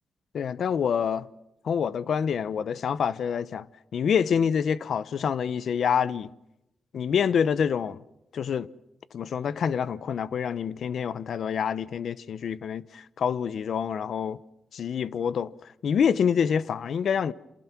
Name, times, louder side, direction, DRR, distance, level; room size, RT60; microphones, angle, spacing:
voice 1, 0.3-1.3 1.6-3.7 3.9-6.3 6.9-8.0 8.3-8.7 9.1-14.4 14.7-17.3, left 7 dB, 60° left, 0.8 m, -27 dB
27.5 x 27.0 x 6.1 m
wide cardioid pair, 140°, 0 cm